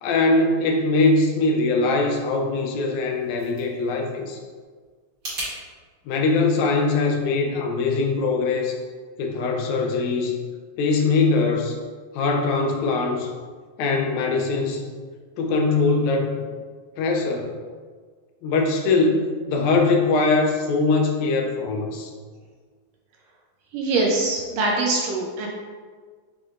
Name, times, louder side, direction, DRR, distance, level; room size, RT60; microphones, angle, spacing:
voice 1, 0.0-4.4 6.1-8.8 9.2-10.4 10.8-11.8 12.1-13.3 13.8-14.9 15.4-16.5 17.0-17.5 18.4-19.2 19.5-22.1, left 3 dB, 80° left, 2 dB, 1.9 m, -22 dB
sound 1, 2.9-5.5, right 1 dB, 40° right, 1.5 m, -38 dB
voice 2, 23.7-25.5, right 2 dB, 80° right, -1 dB, 1.5 m, -23 dB
6.1 x 3.4 x 2.4 m, 1.6 s
omnidirectional pair, 3.4 m